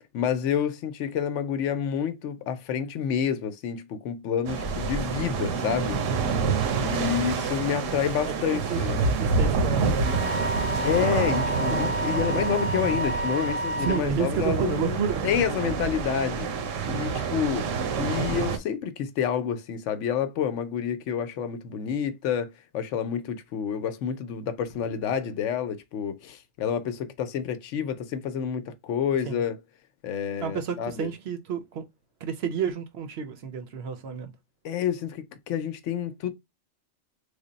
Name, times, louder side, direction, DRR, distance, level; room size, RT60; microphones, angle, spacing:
voice 1, 0.1-6.0 6.8-9.0 10.8-16.6 16.9-17.7 18.0-29.6 30.0-31.1 34.6-36.3, left 8 dB, 75° left, 0.9 m, -29 dB
sound 1, 4.5-18.6, right 5 dB, 85° right, 1.0 m, -27 dB
voice 2, 8.3-10.3 13.8-15.2 29.2-29.4 30.4-31.8 32.2-34.3, right 7 dB, 65° right, 0.8 m, -31 dB
Wind instrument woodwind instrument, 10.0-14.0, equal, 10° left, 0.8 m, -31 dB
3.3 x 2.1 x 3.8 m
omnidirectional pair, 1.3 m